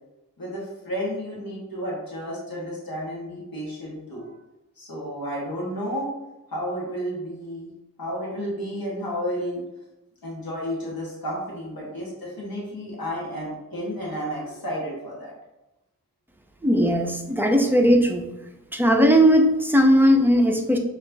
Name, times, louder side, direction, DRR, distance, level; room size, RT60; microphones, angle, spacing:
voice 1, 0.4-4.3 4.8-6.1 6.5-7.7 8.0-9.6 10.2-15.3, equal, 80° left, -5 dB, 1.4 m, -32 dB
voice 2, 16.6-18.2 18.7-20.8, equal, 5° right, 3 dB, 0.6 m, -18 dB
5.7 x 3.1 x 2.7 m, 0.97 s
wide cardioid pair, 65°, 36 cm